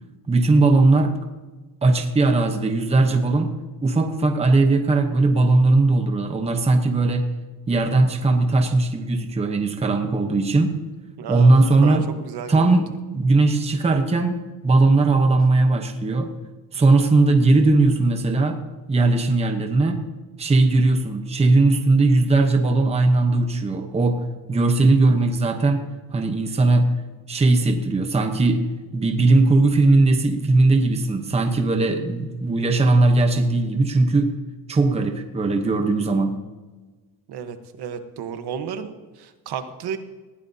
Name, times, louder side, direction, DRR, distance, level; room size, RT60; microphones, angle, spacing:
voice 1, 0.3-1.1 1.8-3.5 3.8-7.2 7.7-10.7 11.3-12.0 12.5-12.9 13.1-16.3 16.7-18.6 18.9-20.0 20.4-24.2 24.5-26.9 27.3-34.3 34.7-36.3, right 2 dB, 15° right, 5 dB, 0.9 m, -19 dB
voice 2, 11.2-12.7 37.3-40.0, right 7 dB, 60° right, 8 dB, 1.2 m, -32 dB
19.5 x 15.0 x 2.8 m, 1.3 s
cardioid pair, 180°, 43 cm